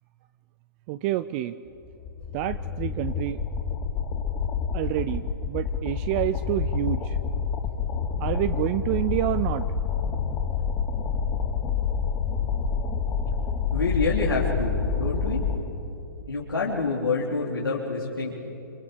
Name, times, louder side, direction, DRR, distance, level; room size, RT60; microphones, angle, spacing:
voice 1, 0.9-1.6 2.3-3.4 4.7-7.2 8.2-9.6, right 14 dB, 35° right, 12 dB, 0.7 m, -28 dB
sound 1, 1.8-15.6, left 6 dB, 25° left, 2.9 m, -28 dB
voice 2, 13.7-15.4 16.3-18.3, left 3 dB, 90° left, -4 dB, 3.9 m, -27 dB
26.5 x 26.5 x 7.3 m, 3.0 s
hypercardioid pair, 125°, 12 cm